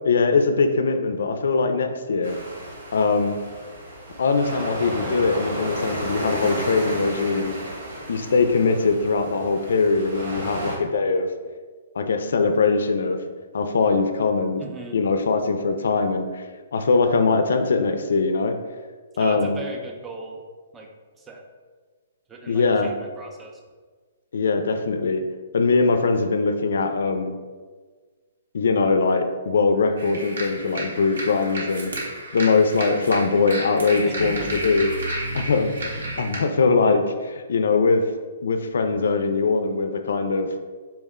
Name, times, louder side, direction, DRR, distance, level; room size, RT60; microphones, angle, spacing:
voice 1, 0.0-2.4 2.9-3.4 4.2-7.5 8.1-11.3 12.0-13.2 13.5-14.6 14.9-16.5 16.7-18.6 19.2-19.6 22.5-22.9 24.3-25.2 25.5-27.4 28.5-34.9 35.3-38.0 38.4-40.5, left 4 dB, 75° left, 7 dB, 0.3 m, -21 dB
sound 1, 2.2-10.8, right 1 dB, 65° right, 1.2 m, -33 dB
voice 2, 14.6-15.0 19.2-20.4 20.7-20.9 21.2-21.4 22.3-23.6 34.0-34.5, right 2 dB, 10° right, 1 dB, 0.4 m, -38 dB
sound 2, 30.0-36.4, right 1 dB, 90° right, 1.2 m, -32 dB
4.3 x 2.1 x 3.5 m, 1.5 s
hypercardioid pair, 160°, 0 cm